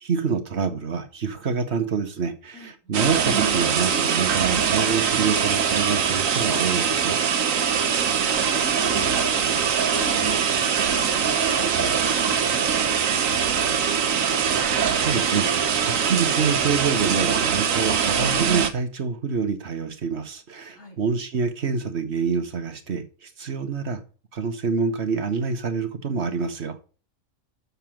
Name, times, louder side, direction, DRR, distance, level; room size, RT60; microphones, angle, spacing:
voice 1, 0.0-7.2 15.0-15.5 16.0-24.0 24.3-26.7, right 5 dB, 55° right, 1.3 m, -26 dB
voice 2, 2.5-3.0 7.7-7.9 8.5-10.4 10.7-13.7 20.7-21.0, left 1 dB, 85° left, 4.6 m, -40 dB
sound 1, 2.9-18.7, right 7 dB, 80° right, 1.4 m, -22 dB
6.9 x 6.6 x 7.5 m
omnidirectional pair, 1.4 m